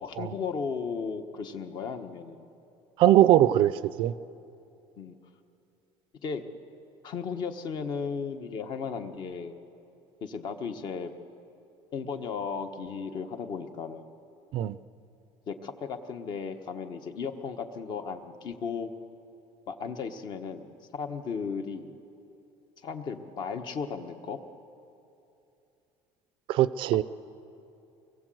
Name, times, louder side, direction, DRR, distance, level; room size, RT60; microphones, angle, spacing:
voice 1, 0.0-2.5 5.0-5.2 6.2-6.4 7.0-9.6 10.2-11.1 11.9-14.0 15.5-18.9 19.7-22.0 22.8-24.4, left 5 dB, 40° left, 7 dB, 1.3 m, -35 dB
voice 2, 3.0-3.7 4.0-4.1 14.5-14.8 26.5-27.0, right 13 dB, 50° right, 16 dB, 0.5 m, -20 dB
24.5 x 21.0 x 7.8 m, 2.7 s
cardioid pair, 165°, 11 cm